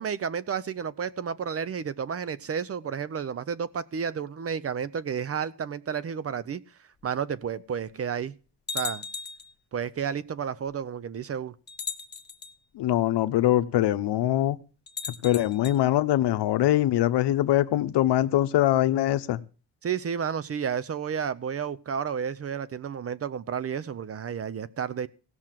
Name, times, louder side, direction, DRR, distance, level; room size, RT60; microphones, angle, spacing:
voice 1, 0.0-6.6 7.0-8.3 8.7-9.0 9.7-11.5 19.8-25.1, right 7 dB, 35° right, 0.6 m, -31 dB
sound 1, 7.0-7.1 7.9-8.0 8.7-9.5 10.7-10.8 11.7-12.5 14.9-15.8, left 5 dB, 25° left, 0.8 m, -36 dB
voice 2, 12.7-14.6 15.2-19.4, left 13 dB, 85° left, 0.9 m, -23 dB
16.5 x 6.2 x 7.5 m
cardioid pair, 130°, 40 cm